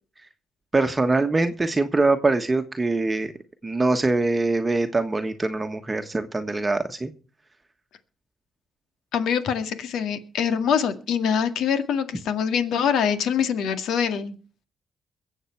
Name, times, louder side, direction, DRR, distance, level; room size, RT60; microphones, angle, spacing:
voice 1, 0.7-3.3 3.6-7.1, right 3 dB, 20° right, 7 dB, 1.3 m, -23 dB
voice 2, 9.1-14.4, left 7 dB, 80° left, 10 dB, 1.9 m, -24 dB
22.5 x 7.9 x 4.6 m, 0.38 s
cardioid pair, 90°, 0 cm